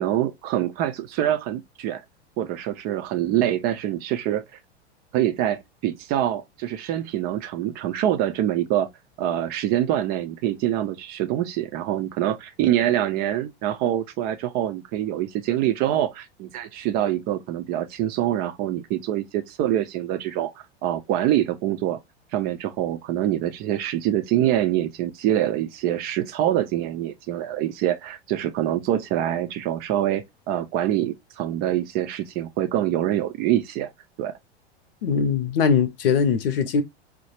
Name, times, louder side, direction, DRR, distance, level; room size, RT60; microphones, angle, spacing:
voice 1, 0.0-2.0 2.4-4.4 5.1-8.9 9.2-20.5 20.8-22.0 22.3-33.9 34.2-34.4, right 12 dB, 30° right, 0.4 m, -25 dB
voice 2, 35.0-36.8, left 6 dB, 60° left, 0.8 m, -21 dB
4.6 x 2.1 x 2.8 m
figure-of-eight pair, 90°, 33 cm